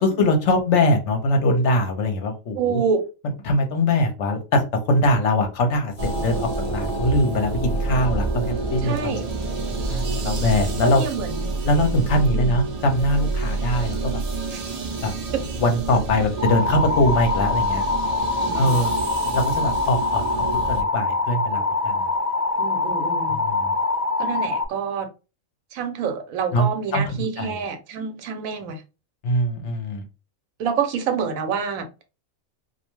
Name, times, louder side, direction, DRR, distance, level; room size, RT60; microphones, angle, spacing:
voice 1, 0.0-2.8 3.4-5.9 6.2-9.2 9.9-11.0 11.6-14.2 15.0-15.1 15.6-17.8 18.5-18.9 19.3-20.2 20.7-22.1 23.3-23.7 26.5-26.7 26.9-27.0 27.4-27.6 29.2-30.0, left 1 dB, 65° left, 0.9 m, -22 dB
voice 2, 2.5-3.0 8.8-9.2 10.8-11.5 12.3-12.6 14.5-14.6 15.3-15.4 18.4-19.0 22.6-23.4 24.2-25.1 25.7-28.8 30.6-31.9, right 6 dB, 85° right, 1.0 m, -27 dB
sound 1, 6.0-20.8, right 3 dB, 50° right, 0.4 m, -28 dB
sound 2, 16.4-24.7, left 3 dB, 85° left, 0.3 m, -24 dB
2.4 x 2.1 x 2.9 m
omnidirectional pair, 1.4 m